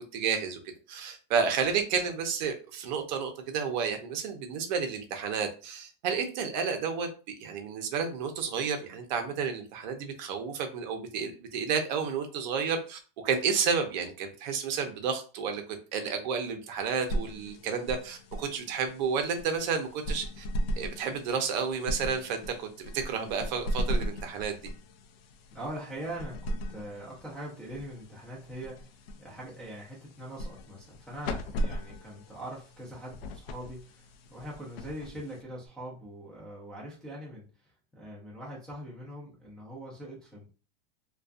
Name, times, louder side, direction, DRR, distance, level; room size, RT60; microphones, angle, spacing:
voice 1, 0.1-0.6 0.9-7.1 7.4-15.6 15.9-20.4 20.8-24.6, right 6 dB, 50° right, 5 dB, 0.6 m, -31 dB
sound 1, 16.8-35.7, equal, 80° left, 0.5 m, -38 dB
voice 2, 25.5-40.5, right 1 dB, ahead, -7 dB, 0.4 m, -42 dB
2.4 x 2.2 x 2.4 m, 0.35 s
supercardioid pair, 150°, 30 cm